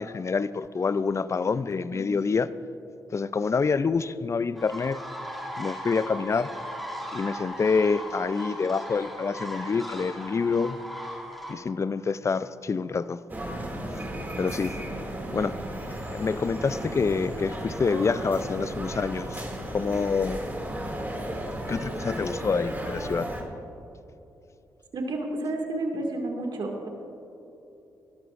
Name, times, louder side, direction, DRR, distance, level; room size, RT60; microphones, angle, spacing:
voice 1, 0.0-2.5 3.1-5.0 5.6-6.5 7.1-10.8 11.5-13.2 14.4-14.8 15.3-15.5 16.1-19.4 19.7-20.4 21.7-23.3, left 5 dB, 35° left, 16 dB, 0.4 m, -27 dB
sound 1, 4.6-11.5, equal, ahead, 2.4 m, -38 dB
sound 2, 13.3-23.4, right 1 dB, 20° right, 2.5 m, -34 dB
voice 2, 24.9-26.9, right 2 dB, 60° right, 2 dB, 2.1 m, -30 dB
18.5 x 12.0 x 2.6 m, 2.9 s
supercardioid pair, 50°, 8 cm